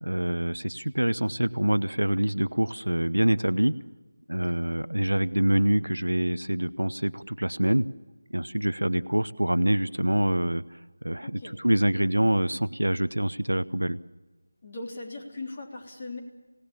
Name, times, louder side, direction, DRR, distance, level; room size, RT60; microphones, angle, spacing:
voice 1, 0.0-3.8 4.3-7.9 8.3-10.6 11.0-14.0, right 1 dB, 75° right, 15 dB, 0.8 m, -25 dB
voice 2, 11.2-11.6 14.6-16.2, left 2 dB, 30° left, 1 dB, 3.4 m, -39 dB
27.0 x 18.0 x 7.2 m, 1.2 s
figure-of-eight pair, 165°, 0 cm